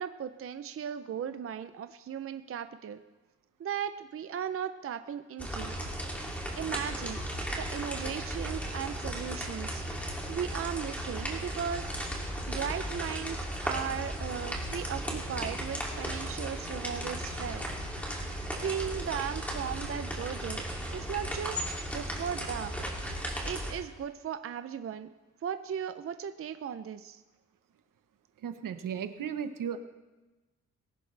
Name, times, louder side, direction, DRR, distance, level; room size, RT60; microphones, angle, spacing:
voice 1, 0.0-3.0 3.6-5.7 6.5-7.2 7.6-12.2 12.5-17.6 18.5-20.6 20.9-21.7 21.9-22.7 23.4-25.1 25.4-27.2, right 8 dB, 45° right, 10 dB, 0.6 m, -37 dB
sound 1, 5.4-23.7, equal, 5° left, 2.6 m, -36 dB
voice 2, 28.4-29.8, right 8 dB, 85° right, 9 dB, 1.1 m, -35 dB
20.0 x 17.5 x 3.3 m, 1.1 s
wide cardioid pair, 145°, 32 cm